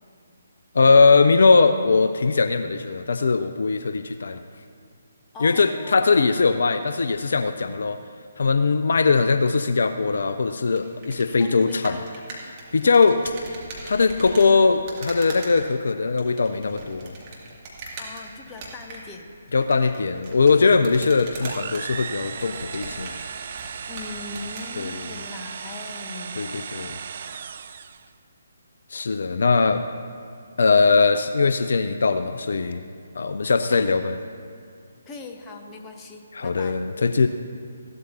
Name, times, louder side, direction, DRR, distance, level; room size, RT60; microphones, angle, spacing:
voice 1, 0.7-4.4 5.4-8.0 8.4-12.0 12.7-13.5 13.8-17.1 19.5-23.1 24.8-25.0 26.4-27.0 28.9-29.8 30.6-32.8 33.2-34.2 36.3-37.3, left 4 dB, 60° left, 9 dB, 0.5 m, -20 dB
voice 2, 5.3-6.2 11.4-12.2 12.8-12.9 18.0-19.3 23.9-26.4 35.1-36.8, left 3 dB, 15° left, 3 dB, 1.0 m, -40 dB
sound 1, 10.7-24.7, right 2 dB, 30° right, 2.4 m, -41 dB
sound 2, 21.4-28.1, right 6 dB, 45° right, 0.5 m, -36 dB
16.0 x 12.5 x 2.7 m, 2.3 s
figure-of-eight pair, 140°, 0 cm